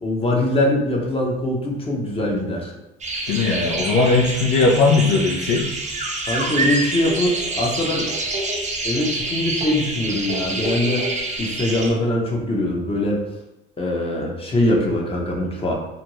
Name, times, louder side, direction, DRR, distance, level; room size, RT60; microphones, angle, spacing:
voice 1, 0.0-2.7 6.3-8.1 8.8-11.1 11.4-13.2 13.8-15.7, left 1 dB, 20° left, -2 dB, 0.7 m, -22 dB
sound 1, 3.0-11.9, right 2 dB, 25° right, 0.6 m, -27 dB
voice 2, 3.3-5.7, left 3 dB, 70° left, -3 dB, 0.6 m, -18 dB
2.5 x 2.2 x 3.0 m, 0.90 s
supercardioid pair, 85°, 29 cm